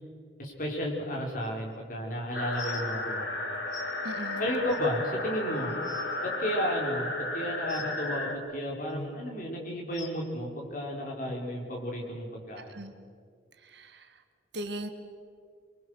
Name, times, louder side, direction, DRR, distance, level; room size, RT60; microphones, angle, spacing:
voice 1, 0.4-3.3 4.4-5.7 6.2-12.8, equal, 45° left, -1 dB, 4.7 m, -33 dB
sound 1, 2.3-8.3, left 2 dB, 60° left, 2.6 m, -33 dB
sound 2, 2.5-2.8 3.7-3.8 4.7-4.8 5.4-5.5 5.7-6.0 7.7-7.9 8.9-9.1 9.9-10.1 11.3-11.4 12.1-12.2 12.9-13.0, left 3 dB, 75° left, 2.4 m, -42 dB
voice 2, 4.0-4.5 12.6-12.9 13.6-14.1 14.5-14.9, right 1 dB, 65° right, 7 dB, 1.7 m, -39 dB
26.5 x 23.0 x 6.5 m, 2.2 s
head